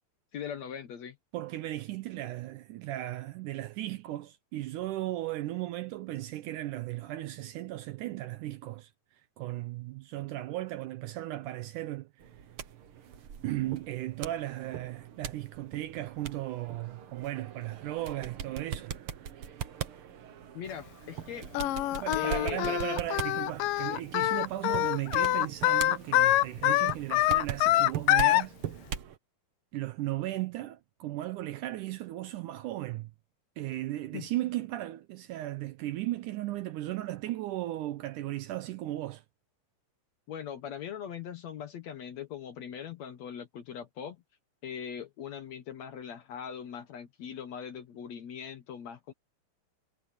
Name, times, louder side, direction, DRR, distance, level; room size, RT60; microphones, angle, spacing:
voice 1, 0.3-1.2 20.5-21.5 22.1-22.8 34.1-34.3 40.3-44.2 44.6-49.1, left 9 dB, 60° left, 2.1 m, -40 dB
voice 2, 1.3-8.9 9.4-12.1 13.4-19.0 21.9-28.6 29.7-33.1 33.6-39.2, right 15 dB, 80° right, 1.9 m, -36 dB
sound 1, 12.2-29.2, right 9 dB, 60° right, 1.4 m, -41 dB
Singing, 21.5-28.4, left 15 dB, 75° left, 2.2 m, -25 dB
omnidirectional pair, 4.1 m